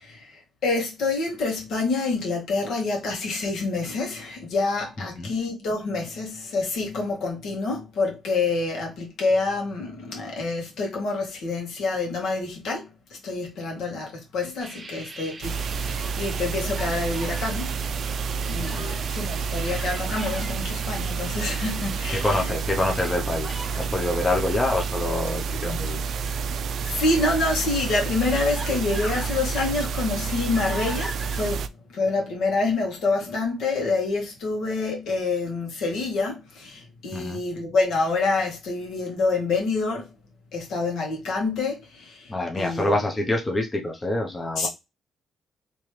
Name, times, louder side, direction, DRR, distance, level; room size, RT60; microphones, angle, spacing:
voice 1, 0.0-18.0 18.4-22.5 26.8-40.1 40.5-42.9 44.6-44.7, left 3 dB, 75° left, 1.4 m, -27 dB
voice 2, 5.0-5.3 18.6-19.0 22.1-26.0 37.1-37.4 42.3-44.7, left 2 dB, 20° left, 0.7 m, -26 dB
sound 1, 14.6-22.4, right 3 dB, 30° right, 0.8 m, -43 dB
sound 2, 15.4-31.7, right 5 dB, 65° right, 0.3 m, -29 dB
Human voice, 15.9-16.2 16.6-17.4 18.0-19.1 19.5-20.5 21.2-21.9 22.8-23.8 26.1-27.0 27.7-27.8 28.3-29.4 29.8-31.4, equal, 5° left, 1.4 m, -40 dB
3.2 x 3.0 x 3.1 m
cardioid pair, 90°, 0 cm